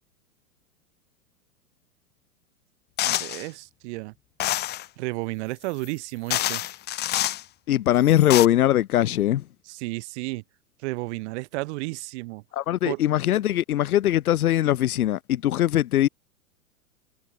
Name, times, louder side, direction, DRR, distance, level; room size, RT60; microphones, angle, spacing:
sound 1, 3.0-3.5 4.4-4.9 5.8-5.9 6.3-7.4 8.1-8.5, left 14 dB, 25° left, 0.8 m, -26 dB
voice 1, 3.0-4.1 5.0-6.6 9.6-10.4 10.8-12.4 12.8-13.0, right 23 dB, 50° right, 1.7 m, -32 dB
voice 2, 7.7-9.4 12.5-16.1, left 12 dB, 80° left, 0.7 m, -21 dB
hypercardioid pair, 110°, 44 cm